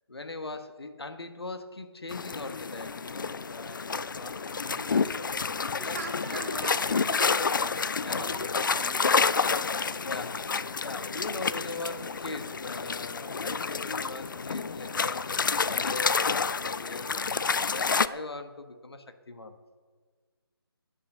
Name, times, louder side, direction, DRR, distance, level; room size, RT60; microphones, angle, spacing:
voice 1, 0.1-6.0 6.3-6.5 7.8-8.5 9.6-19.5, left 2 dB, 75° left, 8 dB, 1.4 m, -41 dB
sound 1, 2.1-18.1, left 5 dB, 50° left, 0.5 m, -29 dB
voice 2, 5.8-10.0, right 2 dB, 35° right, 0 dB, 3.3 m, -42 dB
13.0 x 9.9 x 6.7 m, 1.5 s
figure-of-eight pair, 155°, 13 cm